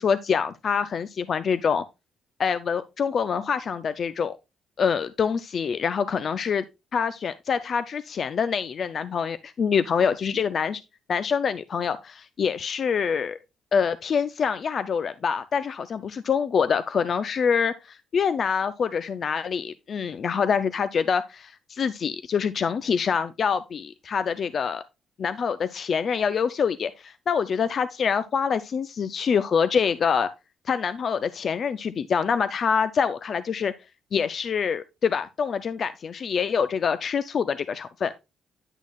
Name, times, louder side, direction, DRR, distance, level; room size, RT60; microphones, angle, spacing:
voice 1, 0.0-1.8 2.4-4.4 4.8-6.6 6.9-10.8 11.1-13.4 13.7-24.8 25.2-30.3 30.7-33.7 34.1-38.1, left 6 dB, 50° left, 0.4 m, -25 dB
9.8 x 6.2 x 2.3 m
cardioid pair, 90°, 0 cm